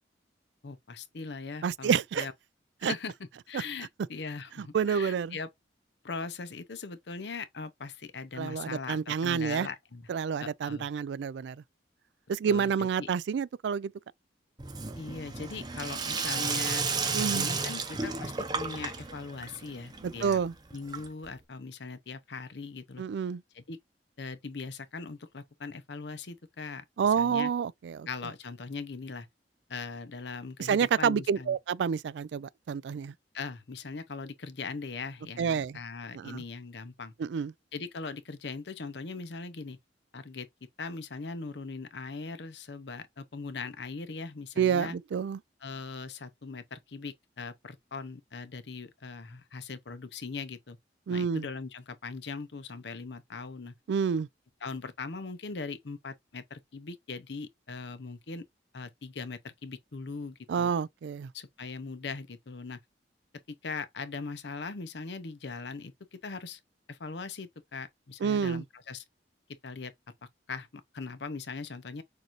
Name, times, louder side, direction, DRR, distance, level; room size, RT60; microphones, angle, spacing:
voice 1, 0.6-2.3 2.8-5.5 6.0-10.0 10.4-10.9 12.5-12.7 13.0-13.1 15.0-20.4 20.7-23.0 23.5-23.8 24.2-27.5 28.1-29.3 29.7-31.6 33.3-37.1 37.7-39.8 40.1-40.5 40.8-45.0 45.6-50.8 51.1-53.7 54.6-58.5 58.7-60.7 61.3-62.8 63.5-66.6 66.9-69.0 69.6-69.9 70.5-72.0, left 4 dB, 70° left, 0.7 m, -40 dB
voice 2, 1.6-2.3 2.8-2.9 4.6-5.4 8.4-9.7 10.1-11.6 12.3-13.9 17.1-17.5 20.0-20.5 23.0-23.4 27.0-28.1 30.6-33.1 35.4-35.8 36.1-36.4 37.2-37.5 44.6-45.4 51.1-51.5 53.9-54.3 60.5-61.3 68.2-68.6, right 7 dB, 75° right, 0.3 m, -29 dB
Sink (filling or washing), 14.6-21.4, right 4 dB, 25° right, 0.7 m, -33 dB
6.5 x 2.6 x 3.0 m
head